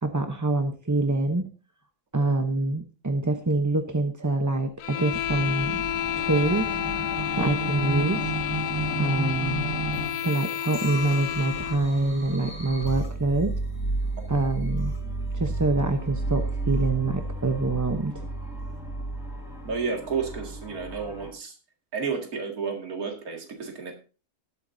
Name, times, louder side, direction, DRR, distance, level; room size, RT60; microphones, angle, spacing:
voice 1, 0.0-1.5 2.1-5.8 6.2-6.7 7.4-8.2 9.0-9.7 10.2-13.5 14.3-14.9 15.3-18.2, right 2 dB, 20° right, 6 dB, 0.5 m, -25 dB
sound 1, 4.8-11.9, left 12 dB, 80° left, 1.3 m, -30 dB
sound 2, 5.1-21.3, right 2 dB, 55° left, 3.9 m, -32 dB
voice 2, 19.6-21.5 21.9-23.9, right 5 dB, 70° right, 2 dB, 2.6 m, -31 dB
19.0 x 8.3 x 2.7 m, 0.33 s
omnidirectional pair, 1.6 m